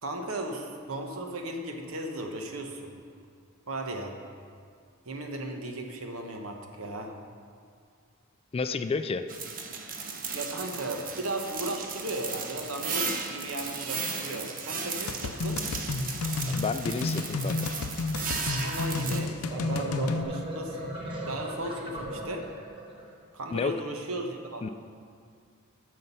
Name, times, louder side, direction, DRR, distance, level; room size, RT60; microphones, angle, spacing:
voice 1, 0.0-3.0 3.7-4.1 5.0-7.1 10.3-15.6 18.5-20.9 21.3-22.4 23.3-24.7, right 1 dB, 70° right, 3 dB, 1.1 m, -36 dB
voice 2, 8.5-9.3 16.5-17.7 23.5-23.7 24.6-24.7, left 4 dB, 25° left, 10 dB, 0.3 m, -30 dB
sound 1, 9.3-19.2, right 4 dB, 40° right, 0.9 m, -35 dB
sound 2, 15.1-20.2, left 3 dB, 80° left, 0.5 m, -31 dB
sound 3, 19.4-23.1, right 1 dB, 25° right, 1.4 m, -38 dB
9.4 x 6.6 x 5.6 m, 2.2 s
head